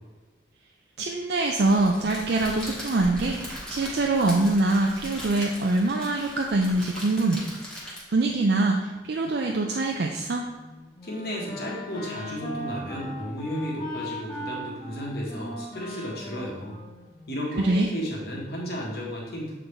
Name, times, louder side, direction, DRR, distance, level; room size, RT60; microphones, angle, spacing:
voice 1, 1.0-7.4 8.1-10.5 17.6-17.9, right 2 dB, 60° right, 1 dB, 0.4 m, -24 dB
Crackle, 1.6-8.3, equal, 5° left, 1.3 m, -39 dB
Wind instrument woodwind instrument, 10.5-17.6, equal, 25° left, 0.9 m, -38 dB
voice 2, 11.0-16.8 17.3-19.5, equal, 55° left, -3 dB, 1.5 m, -33 dB
7.9 x 3.8 x 3.3 m, 1.3 s
head